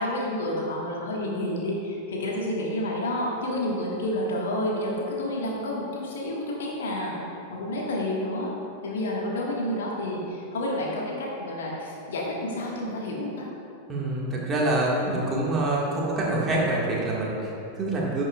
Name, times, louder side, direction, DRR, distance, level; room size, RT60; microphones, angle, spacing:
voice 1, 0.0-7.2 7.5-8.5 8.8-13.5, left 1 dB, 60° left, -2 dB, 1.6 m, -29 dB
voice 2, 13.9-18.2, right 2 dB, 20° right, -4 dB, 1.7 m, -26 dB
10.5 x 6.8 x 2.4 m, 2.7 s
figure-of-eight pair, 90°, 0 cm